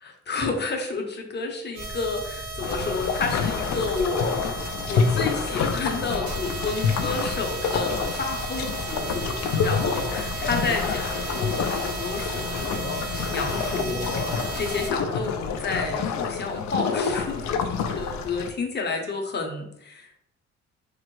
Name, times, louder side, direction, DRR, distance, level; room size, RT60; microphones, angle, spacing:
voice 1, 0.0-4.5 4.9-20.3, left 3 dB, 35° left, 3 dB, 0.7 m, -30 dB
sound 1, 1.7-14.9, right 2 dB, 65° right, 1.1 m, -34 dB
sound 2, 2.6-18.5, left 6 dB, 65° left, 0.5 m, -28 dB
3.5 x 2.0 x 3.1 m, 0.76 s
cardioid pair, 90°, 30 cm